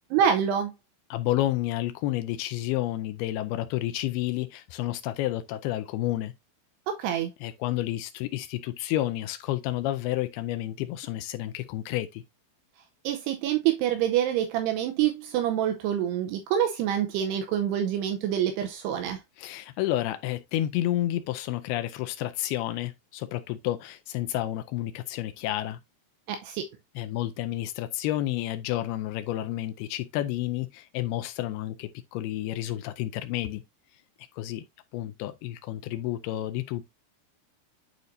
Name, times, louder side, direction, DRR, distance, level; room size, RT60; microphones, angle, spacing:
voice 1, 0.1-0.7 6.9-7.3 13.0-19.2 26.3-26.6, right 10 dB, 80° right, 2.7 m, -26 dB
voice 2, 1.1-6.3 7.4-12.2 19.4-25.8 27.0-33.6 34.3-34.6 34.9-36.9, left 14 dB, 80° left, 2.3 m, -30 dB
11.0 x 4.0 x 2.6 m
omnidirectional pair, 5.0 m